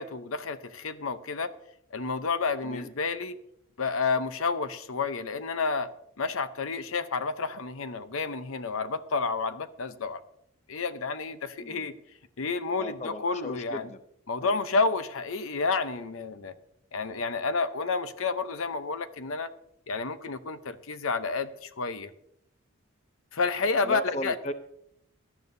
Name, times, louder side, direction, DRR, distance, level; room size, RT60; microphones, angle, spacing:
voice 1, 0.0-1.5 1.9-3.4 3.8-5.9 6.2-10.2 10.7-11.9 12.4-13.9 14.3-16.5 16.9-19.5 19.9-22.1 23.3-24.4, left 4 dB, 75° left, 11 dB, 0.8 m, -30 dB
voice 2, 11.6-11.9 12.8-14.0 14.4-14.5 23.8-24.5, left 1 dB, 30° left, 10 dB, 0.6 m, -36 dB
17.0 x 12.5 x 2.7 m, 0.74 s
head